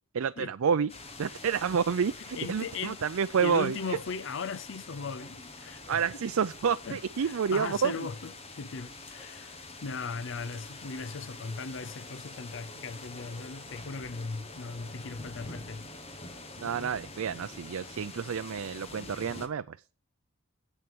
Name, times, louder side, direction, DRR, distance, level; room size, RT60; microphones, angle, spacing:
voice 1, 0.1-0.9 1.2-4.0 5.9-8.1 16.6-19.8, right 6 dB, 80° right, 0.4 m, -29 dB
sound 1, 0.9-19.5, left 2 dB, 30° left, 1.4 m, -46 dB
voice 2, 2.4-3.0 3.4-6.2 6.8-8.3 8.6-15.9, left 5 dB, 60° left, 0.5 m, -38 dB
8.2 x 7.6 x 6.9 m
head